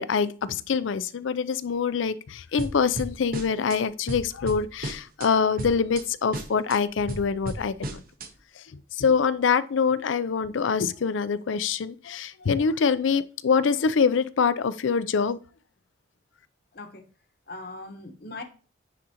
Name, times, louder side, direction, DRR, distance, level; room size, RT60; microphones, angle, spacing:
voice 1, 0.0-8.0 9.0-15.4, left 5 dB, 80° left, 0.5 m, -25 dB
sound 1, 2.6-3.8 4.1-5.3 5.6-6.0 6.3-8.3, right 1 dB, 50° right, 0.8 m, -35 dB
voice 2, 16.7-17.1 17.5-18.4, left 2 dB, 55° left, 1.0 m, -40 dB
9.9 x 3.9 x 2.8 m
head